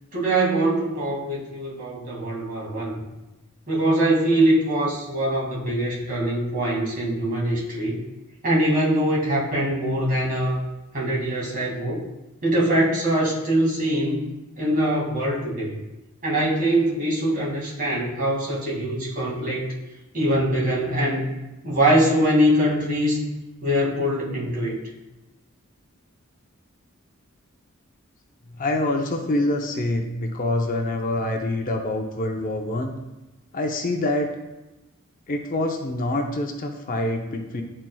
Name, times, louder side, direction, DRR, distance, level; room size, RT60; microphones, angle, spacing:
voice 1, 0.1-3.0 3.7-8.0 8.4-10.6 10.9-12.0 12.4-14.2 14.6-15.8 16.2-19.7 20.1-21.2 21.6-23.2 23.6-24.8, right 1 dB, 45° right, -5 dB, 2.1 m, -23 dB
voice 2, 28.6-32.9 33.5-34.3 35.3-37.6, left 1 dB, 40° left, 3 dB, 0.6 m, -25 dB
10.5 x 4.3 x 2.3 m, 1.0 s
head